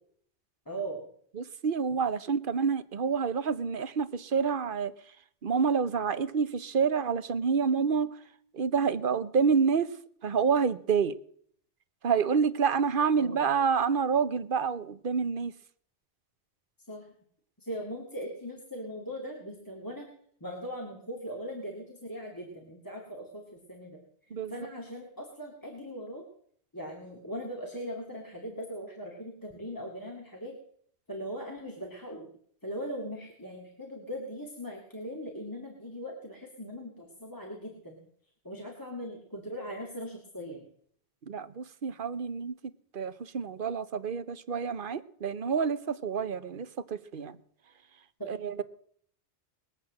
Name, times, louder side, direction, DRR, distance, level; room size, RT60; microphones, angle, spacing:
voice 1, 0.7-1.0 13.2-13.5 16.9-17.1 17.6-20.1 20.4-24.0 24.5-26.2 26.7-30.6 31.1-32.3 32.6-38.0 38.4-40.6 48.2-48.3, equal, 15° left, 0 dB, 2.3 m, -39 dB
voice 2, 1.3-4.9 5.4-8.2 8.5-9.9 10.2-11.2 12.0-15.5 24.3-24.7 41.2-47.4 48.2-48.6, right 6 dB, 55° right, 14 dB, 0.9 m, -28 dB
21.0 x 8.0 x 7.5 m, 0.62 s
omnidirectional pair, 1.2 m